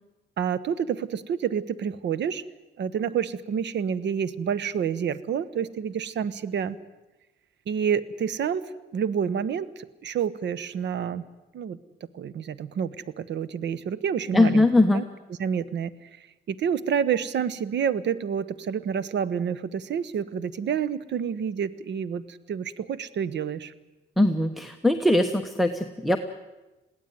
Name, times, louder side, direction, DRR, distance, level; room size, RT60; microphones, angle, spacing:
voice 1, 0.4-2.4 2.8-6.8 7.7-8.6 8.9-11.2 11.5-11.8 12.1-14.7 14.9-15.0 15.4-15.9 16.5-23.7, right 7 dB, 65° right, 17 dB, 1.1 m, -28 dB
voice 2, 14.3-15.0 24.2-26.2, left 2 dB, ahead, 5 dB, 1.2 m, -21 dB
22.0 x 16.5 x 9.4 m, 1.1 s
cardioid pair, 90°, 20 cm